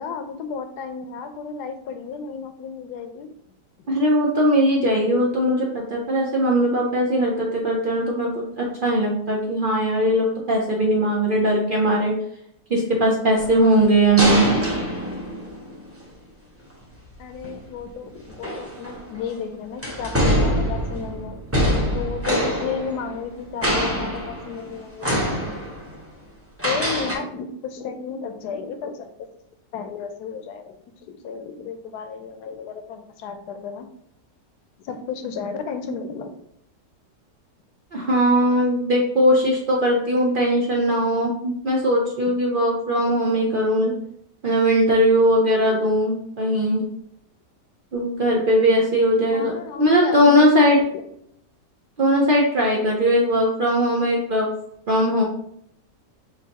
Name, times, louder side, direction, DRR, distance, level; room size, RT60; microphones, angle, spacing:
voice 1, 0.0-3.3 17.2-21.4 21.9-25.4 26.6-29.3 29.7-33.9 34.8-36.4 49.3-51.0, left 6 dB, 70° left, 7 dB, 1.1 m, -33 dB
voice 2, 3.9-12.2 12.7-14.5 37.9-43.9 44.4-46.9 47.9-49.5 49.8-50.8 52.0-54.5 54.9-55.2, equal, 75° right, -2 dB, 0.4 m, -19 dB
sound 1, 13.4-15.9 17.3-17.5 18.3-19.3 19.8-23.4 23.6-24.7 25.0-26.0 26.6-27.1, equal, 15° right, 0.6 m, -24 dB
6.8 x 2.7 x 2.8 m, 0.71 s
omnidirectional pair, 1.9 m